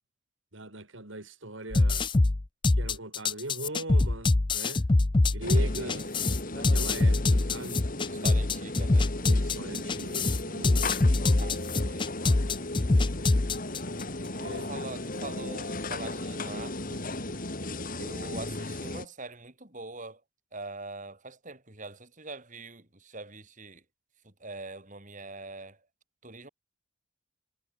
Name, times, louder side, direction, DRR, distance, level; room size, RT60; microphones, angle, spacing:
voice 1, 0.5-2.1 2.8-4.8 5.3-6.0 6.5-7.8 9.2-10.9 14.3-14.7, right 2 dB, 65° right, 3.5 m, -40 dB
sound 1, 1.7-14.0, left 2 dB, 25° left, 0.5 m, -24 dB
sound 2, 5.4-19.1, left 2 dB, 40° left, 2.8 m, -36 dB
voice 2, 5.5-6.1 8.1-9.1 11.4-12.5 12.7-13.1 14.1-14.2 14.5-17.1 18.0-20.2 20.5-23.8 24.2-25.9 26.2-26.5, right 3 dB, 40° right, 4.1 m, -43 dB
head